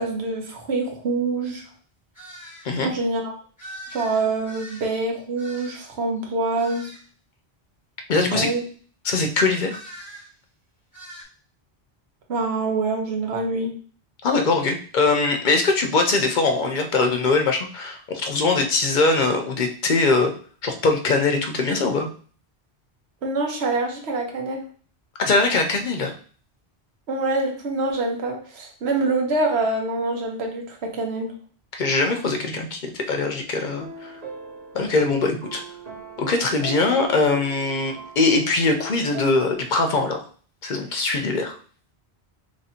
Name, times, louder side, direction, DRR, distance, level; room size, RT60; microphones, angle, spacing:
voice 1, 0.0-1.6 2.8-3.3 3.9-6.9 8.3-8.6 12.3-13.7 23.2-24.7 27.1-31.3, right 3 dB, 80° right, 1 dB, 1.1 m, -25 dB
sound 1, 2.1-2.7 3.6-6.0 6.6-7.1 9.7-10.3 10.9-11.2, right 1 dB, 20° left, 1.1 m, -42 dB
voice 2, 8.1-8.5 9.0-9.7 14.2-20.3 20.6-22.1 25.2-26.1 31.7-34.1 34.7-35.6 36.2-40.2 40.6-41.6, left 3 dB, 55° left, 4 dB, 0.7 m, -22 dB
sound 2, 33.6-40.1, right 5 dB, 40° right, 0.9 m, -40 dB
3.0 x 2.6 x 4.2 m, 0.42 s
omnidirectional pair, 1.1 m